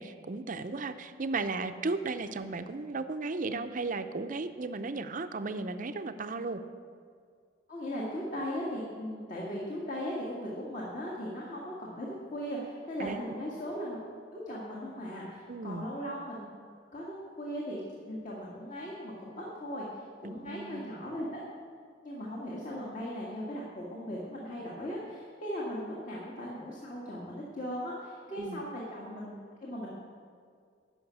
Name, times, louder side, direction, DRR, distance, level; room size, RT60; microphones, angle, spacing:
voice 1, 0.0-6.6 13.0-13.2 15.5-15.9 20.2-20.9 28.4-28.6, right 3 dB, 45° right, 10 dB, 0.6 m, -35 dB
voice 2, 7.7-14.0 14.3-16.5 16.9-17.8 18.1-21.4 22.0-29.4 29.6-29.9, equal, 45° left, -5 dB, 1.8 m, -38 dB
12.5 x 5.8 x 8.1 m, 2.1 s
head